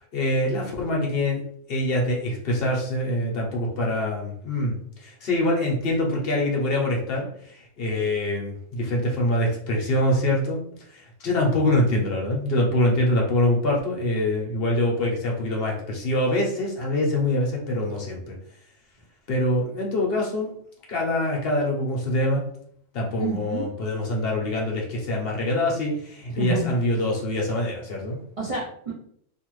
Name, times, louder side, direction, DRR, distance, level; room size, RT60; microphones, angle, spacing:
voice 1, 0.1-1.4 1.7-10.6 10.9-18.3 19.3-20.5 20.9-22.4 22.9-28.2, left 1 dB, 60° left, -1 dB, 0.8 m, -24 dB
voice 2, 23.2-23.7 26.3-26.7 28.4-28.9, right 4 dB, 45° right, -6 dB, 0.4 m, -29 dB
2.6 x 2.4 x 3.0 m, 0.65 s
omnidirectional pair, 1.3 m